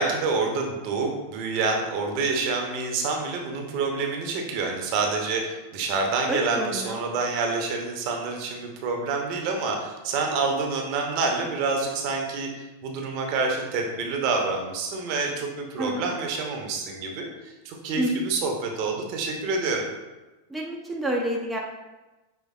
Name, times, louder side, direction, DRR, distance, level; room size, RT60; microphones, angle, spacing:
voice 1, 0.0-12.5 12.8-19.8, right 4 dB, 45° right, 1 dB, 0.7 m, -27 dB
voice 2, 6.3-7.0 15.8-16.0 18.0-18.2 20.5-21.6, right 1 dB, 5° right, -2 dB, 0.5 m, -28 dB
5.3 x 3.2 x 2.4 m, 1.1 s
figure-of-eight pair, 90°, 0 cm